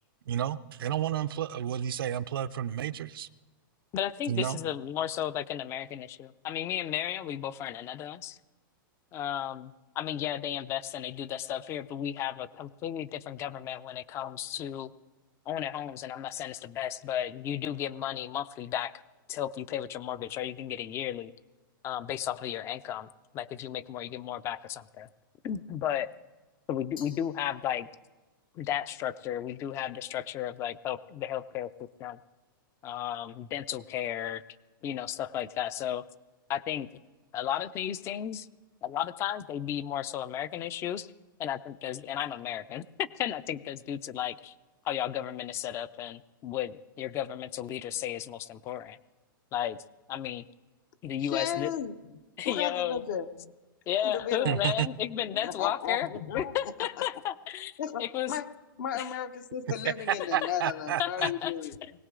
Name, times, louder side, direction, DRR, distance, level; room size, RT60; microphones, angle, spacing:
voice 1, 0.3-3.3 4.3-4.6 54.4-54.9 59.8-61.3, right 10 dB, 80° right, 12 dB, 0.6 m, -31 dB
voice 2, 3.9-8.4 9.1-14.9 15.5-18.9 19.3-21.3 21.8-23.1 23.3-25.1 25.4-26.1 26.7-27.9 28.5-32.2 32.8-34.4 34.8-36.0 36.5-36.9 37.3-38.5 38.8-41.1 41.4-44.5 44.8-49.0 49.5-49.8 50.1-50.5 51.0-51.7 52.4-53.0 53.9-56.1 56.3-58.4 58.9-59.1 60.2-60.5 61.0-61.5 61.8-61.9, left 10 dB, 25° left, 17 dB, 0.4 m, -34 dB
Glass, 27.0-28.2, left 7 dB, 80° left, 1.8 m, -53 dB
voice 3, 51.2-51.9 52.4-53.5 54.0-54.6 55.3-56.5 57.8-58.5 58.8-61.7, left 9 dB, 60° left, 10 dB, 1.0 m, -34 dB
20.0 x 18.0 x 3.8 m, 1.2 s
hypercardioid pair, 150°, 12 cm